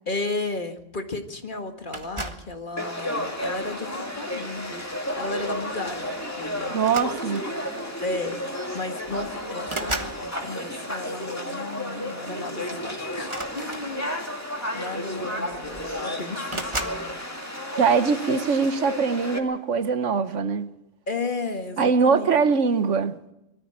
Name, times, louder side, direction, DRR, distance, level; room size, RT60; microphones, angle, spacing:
voice 1, 0.1-4.9 5.2-6.7 8.0-8.4 8.7-14.2 14.7-17.2 21.1-22.3, left 3 dB, 40° left, 1.8 m, -34 dB
sound 1, 1.9-2.5 3.4-3.7 5.2-5.4 5.7-5.9 6.8-7.6 8.6-8.7 9.0-10.2 13.2-14.3 15.2-15.3 15.5-16.0 16.5-17.0, right 2 dB, 25° right, 1.4 m, -34 dB
Conversation / Crowd, 2.8-19.4, left 1 dB, 10° left, 2.3 m, -32 dB
voice 2, 6.7-7.4 17.8-20.7 21.8-23.1, right 5 dB, 70° right, 1.4 m, -22 dB
22.0 x 13.5 x 8.8 m
omnidirectional pair, 1.3 m